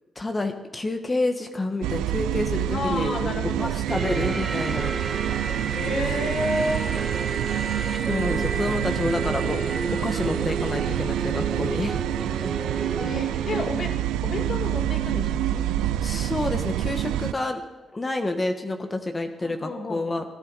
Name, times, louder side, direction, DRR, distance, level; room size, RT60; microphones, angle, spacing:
voice 1, 0.2-3.2 3.6-4.9 7.9-9.6 9.9-12.0 16.0-17.6 17.9-20.2, left 2 dB, 30° left, 6 dB, 1.4 m, -29 dB
sound 1, 1.8-17.3, right 12 dB, 85° right, 0.3 m, -27 dB
voice 2, 2.7-3.8 5.7-6.9 8.3-9.5 13.0-14.0 14.2-15.6 19.4-20.1, left 2 dB, 55° left, 4 dB, 2.0 m, -31 dB
sound 2, 3.9-13.7, right 4 dB, 40° right, 1.4 m, -31 dB
17.0 x 10.5 x 4.1 m, 1.2 s
supercardioid pair, 50°, 0 cm